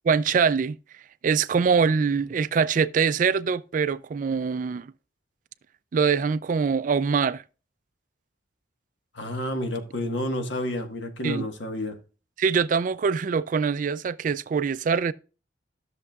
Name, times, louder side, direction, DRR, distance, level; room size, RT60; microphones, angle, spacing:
voice 1, 0.0-0.8 1.2-4.9 5.9-7.4 11.2-11.5 12.4-15.1, right 6 dB, 45° right, 0.3 m, -23 dB
voice 2, 9.1-12.0, left 1 dB, 80° left, 1.4 m, -30 dB
13.5 x 6.7 x 2.3 m
head